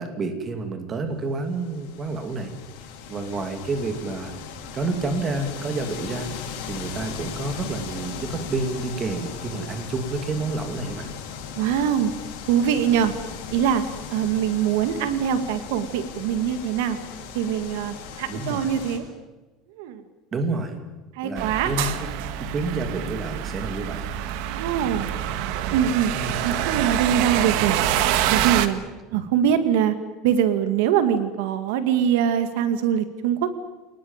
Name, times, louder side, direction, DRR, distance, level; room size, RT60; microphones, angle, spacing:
voice 1, 0.0-2.5 3.1-4.3 4.7-6.3 6.7-11.1 18.3-18.7 20.3-20.8 21.2-22.1 22.4-24.0 26.1-26.4 29.1-29.2, right 3 dB, 20° right, 7 dB, 2.6 m, -29 dB
sound 1, 1.4-19.0, left 6 dB, 75° left, 7.5 m, -37 dB
voice 2, 11.6-12.1 12.5-13.1 13.5-13.8 14.1-17.0 17.3-19.0 19.8-20.0 21.1-22.0 24.5-25.1 25.7-26.1 26.4-27.8 28.3-28.8 29.1-30.0 30.2-33.5, right 9 dB, 75° right, 10 dB, 2.2 m, -23 dB
sound 2, 21.4-28.7, right 11 dB, 60° right, 1.6 m, -26 dB
28.0 x 19.5 x 9.0 m, 1.2 s
cardioid pair, 180°, 0 cm